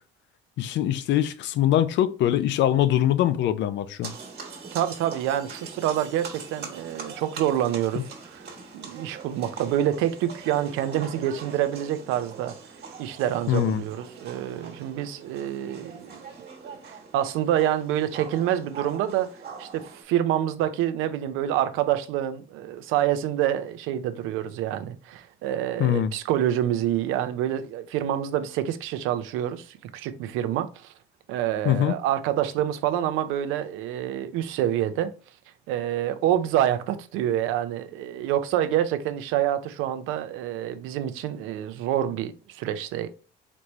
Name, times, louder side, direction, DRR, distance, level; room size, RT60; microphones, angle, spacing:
voice 1, 0.6-4.1 13.5-13.8 25.8-26.1 31.7-31.9, left 11 dB, 65° left, 0.5 m, -23 dB
sound 1, 4.0-20.0, right 5 dB, 55° right, 1.4 m, -42 dB
voice 2, 4.7-12.6 13.0-16.2 16.8-19.3 19.6-30.9 31.3-35.1 35.7-43.1, right 11 dB, 80° right, 0.5 m, -27 dB
4.1 x 3.3 x 3.0 m
supercardioid pair, 85°, 20 cm